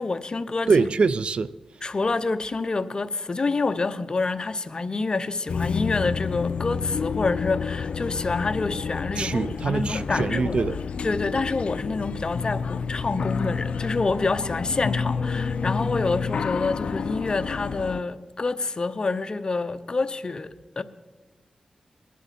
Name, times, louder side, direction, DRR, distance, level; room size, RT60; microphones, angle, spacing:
voice 1, 0.0-0.9 1.8-10.6 11.0-20.8, left 3 dB, 45° left, 0.8 m, -27 dB
voice 2, 0.7-1.5 9.2-10.8, right 4 dB, 60° right, 0.4 m, -23 dB
sound 1, 5.5-18.0, left 5 dB, 70° left, 0.4 m, -29 dB
20.5 x 11.0 x 4.2 m
cardioid pair, 60°, 2 cm